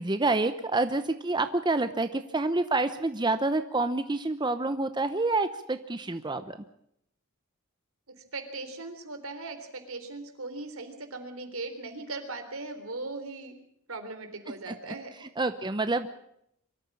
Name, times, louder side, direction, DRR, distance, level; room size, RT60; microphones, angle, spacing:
voice 1, 0.0-6.6 14.7-14.9 15.2-16.1, right 2 dB, 20° right, 10 dB, 0.7 m, -28 dB
voice 2, 8.3-13.5 13.9-15.1, right 3 dB, 75° right, 6 dB, 3.7 m, -39 dB
24.0 x 13.5 x 8.6 m, 0.73 s
head